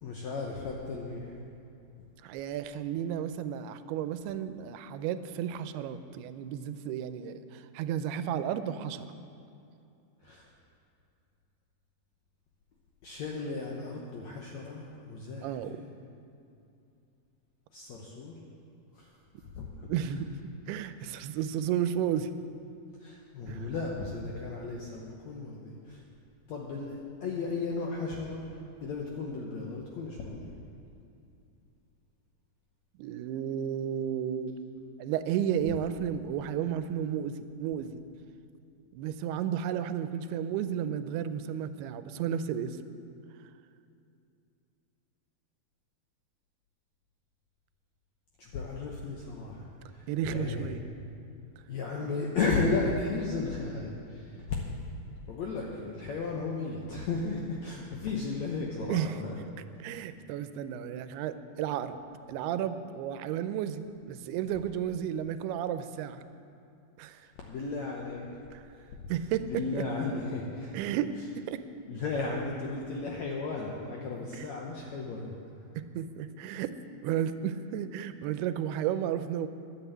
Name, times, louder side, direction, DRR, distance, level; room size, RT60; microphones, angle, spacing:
voice 1, 0.0-1.4 2.0-2.1 10.2-10.5 13.0-15.9 17.7-18.4 18.9-19.1 19.5-20.1 21.0-21.1 23.0-26.0 26.5-28.5 28.8-30.6 48.4-50.7 51.7-54.6 55.3-59.4 67.5-68.2 68.7-68.9 69.4-70.7 71.9-75.4, left 3 dB, 75° left, -1 dB, 1.6 m, -35 dB
voice 2, 2.2-9.1 15.4-15.8 19.9-20.3 20.7-22.4 23.5-23.7 33.0-34.5 35.0-38.0 38.9-42.8 50.1-50.8 58.9-59.2 59.8-62.0 62.3-66.2 67.0-67.3 69.1-69.8 70.7-71.6 74.3-74.5 75.8-76.7 77.0-79.5, right 9 dB, 90° right, 11 dB, 2.6 m, -33 dB
12.0 x 8.0 x 8.1 m, 2.6 s
omnidirectional pair, 4.5 m